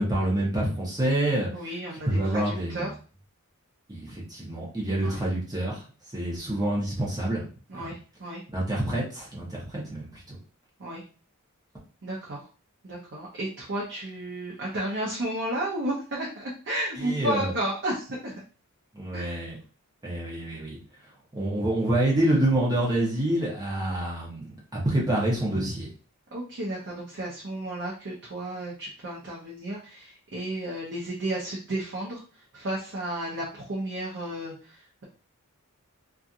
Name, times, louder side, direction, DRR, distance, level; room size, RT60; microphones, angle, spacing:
voice 1, 0.0-1.5 2.1-2.9 3.9-5.8 6.1-7.4 7.7-7.9 8.5-10.4 17.0-17.5 18.9-19.6 20.0-20.8 21.3-24.4 24.7-25.9, right 1 dB, 15° right, -5 dB, 0.8 m, -27 dB
voice 2, 1.5-2.9 5.0-5.2 7.7-8.4 10.8-11.0 12.0-12.4 12.8-18.3 19.1-19.4 26.3-35.1, right 1 dB, 55° right, -4 dB, 0.7 m, -33 dB
2.8 x 2.4 x 2.4 m, 0.38 s
head